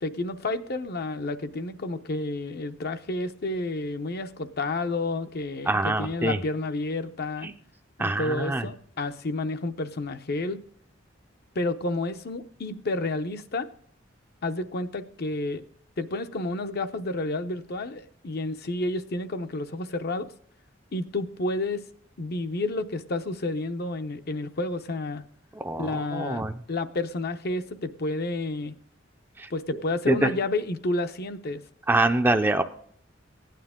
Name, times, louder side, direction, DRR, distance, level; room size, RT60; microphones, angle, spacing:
voice 1, 0.0-7.5 8.0-10.6 11.5-13.7 14.4-15.6 16.0-20.3 20.9-21.8 22.2-25.2 25.8-26.4 26.7-28.7 29.5-31.6, left 2 dB, 55° left, 9 dB, 0.7 m, -30 dB
voice 2, 5.7-6.4 7.4-7.5 8.0-8.7 25.6-26.5 29.4-29.5 30.1-30.3 31.9-32.6, right 2 dB, 10° right, 5 dB, 0.4 m, -24 dB
15.5 x 9.3 x 3.6 m, 0.62 s
head